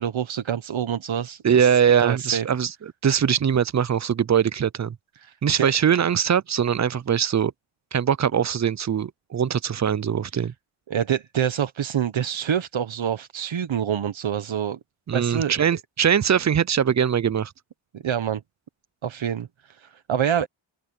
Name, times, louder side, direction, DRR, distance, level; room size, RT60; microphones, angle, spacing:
voice 1, 0.0-1.7 2.0-2.5 5.2-5.7 10.9-14.8 15.1-15.6 17.9-18.4 19.0-20.5, right 9 dB, 70° right, 1.1 m, -26 dB
voice 2, 1.4-5.0 5.4-7.5 7.9-10.5 15.1-17.5, right 8 dB, 35° right, 0.5 m, -22 dB
open air
cardioid pair, 70°, 48 cm